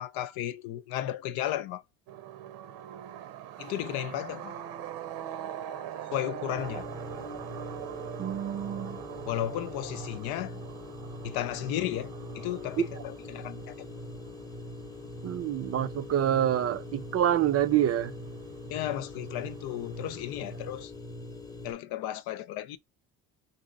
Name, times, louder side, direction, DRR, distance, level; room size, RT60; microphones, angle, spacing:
voice 1, 0.0-1.8 3.6-4.5 6.1-6.9 9.3-10.6 11.2-13.9 18.7-20.9 21.6-22.8, left 12 dB, 85° left, 0.6 m, -34 dB
sound 1, 2.1-20.9, right 10 dB, 85° right, 0.9 m, -44 dB
sound 2, 6.6-21.7, left 2 dB, 10° left, 0.8 m, -42 dB
voice 2, 8.2-9.0 15.2-18.1, right 11 dB, 45° right, 0.5 m, -27 dB
4.1 x 2.7 x 3.7 m
cardioid pair, 115°, 35 cm